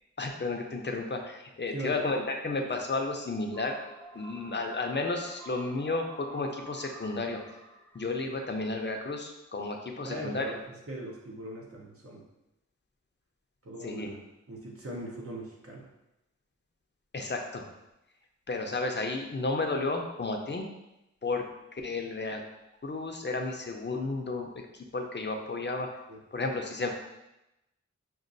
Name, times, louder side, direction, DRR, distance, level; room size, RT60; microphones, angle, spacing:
voice 1, 0.2-3.8 4.1-7.4 7.9-10.6 13.8-14.1 17.1-17.6 18.5-20.7 21.2-21.5 21.7-22.4 22.8-25.9 26.3-26.9, left 3 dB, 35° left, 3 dB, 0.6 m, -32 dB
voice 2, 1.7-2.1 10.0-10.5 10.9-12.2 13.6-14.2 14.5-15.8 26.1-26.2, right 1 dB, 50° right, -2 dB, 0.8 m, -40 dB
sound 1, 3.3-9.2, right 2 dB, 5° left, 0.8 m, -50 dB
6.2 x 2.4 x 2.6 m, 0.91 s
wide cardioid pair, 75°, 30 cm